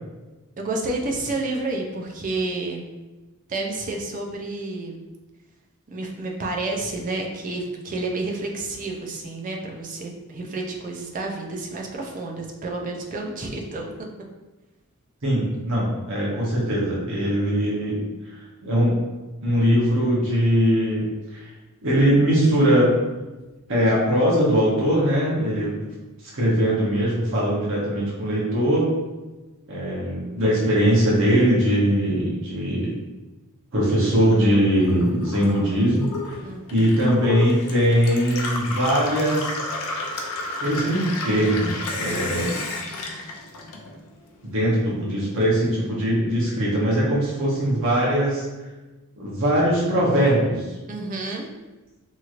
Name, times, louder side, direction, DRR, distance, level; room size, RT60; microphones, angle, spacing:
voice 1, 0.6-2.9 3.5-5.0 5.9-13.9 36.4-36.8 50.9-51.5, right 2 dB, 35° right, 1 dB, 0.4 m, -30 dB
voice 2, 15.2-18.0 18.2-19.0 19.4-21.5 21.8-22.9 23.7-25.8 26.2-28.9 29.7-32.9 33.7-36.4 36.7-39.7 40.6-42.6 44.4-48.7 49.2-50.8, equal, 60° right, -6 dB, 0.9 m, -21 dB
Gurgling / Water tap faucet / Sink (filling or washing), 34.7-44.3 44.6-45.5, left 3 dB, 85° left, 0.5 m, -32 dB
2.9 x 2.9 x 2.4 m, 1.1 s
head